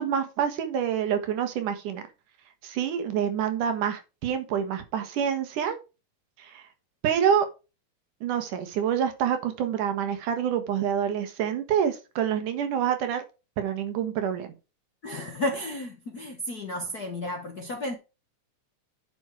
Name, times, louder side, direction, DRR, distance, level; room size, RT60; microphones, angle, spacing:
voice 1, 0.0-2.0 2.6-5.8 6.4-6.6 7.0-7.5 8.2-13.2 13.6-14.5, right 8 dB, 80° right, 2.9 m, -27 dB
voice 2, 15.0-18.0, left 1 dB, 55° left, 1.1 m, -32 dB
9.4 x 6.3 x 4.6 m
omnidirectional pair, 3.6 m